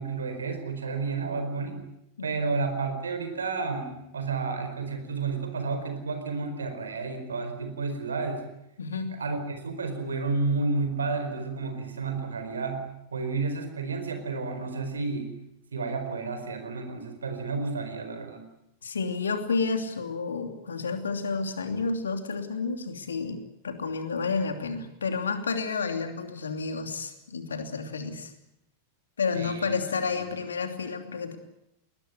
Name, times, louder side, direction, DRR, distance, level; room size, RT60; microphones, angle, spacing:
voice 1, 0.0-1.8 2.2-8.5 9.2-12.8 13.1-15.3 15.7-18.5 29.3-29.8 30.1-30.2, right 4 dB, 70° right, 7 dB, 4.5 m, -31 dB
voice 2, 2.2-2.5 8.8-9.2 18.8-28.3 29.2-31.4, left 4 dB, 70° left, 7 dB, 2.8 m, -30 dB
20.5 x 20.5 x 9.5 m, 0.83 s
figure-of-eight pair, 90°, 0 cm